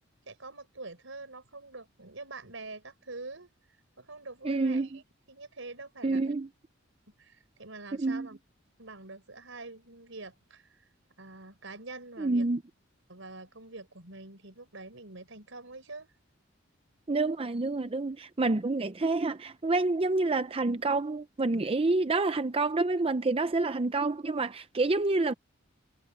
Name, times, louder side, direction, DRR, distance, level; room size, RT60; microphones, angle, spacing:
voice 1, 0.3-3.5 4.0-5.0 5.3-6.4 7.2-8.4 8.8-10.8 11.2-12.5 13.1-16.1, right 3 dB, 75° right, 5.4 m, -45 dB
voice 2, 4.4-4.9 6.0-6.5 8.0-8.3 12.2-12.6 17.1-25.3, right 3 dB, 30° right, 0.6 m, -28 dB
head